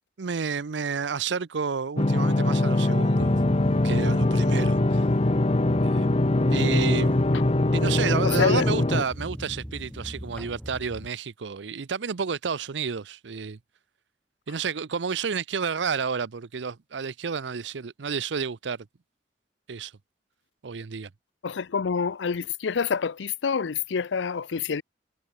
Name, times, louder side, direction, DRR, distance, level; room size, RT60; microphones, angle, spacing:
voice 1, 0.2-3.3 3.8-5.0 5.8-6.1 6.5-7.1 7.7-13.6 14.5-18.8 19.7-19.9 20.6-21.1, right 5 dB, 80° right, 0.6 m, -30 dB
sound 1, 2.0-9.0, left 2 dB, 35° left, 0.9 m, -22 dB
sound 2, 3.2-11.1, equal, 5° left, 4.3 m, -37 dB
voice 2, 8.2-8.7 21.4-24.8, left 6 dB, 85° left, 0.5 m, -27 dB
head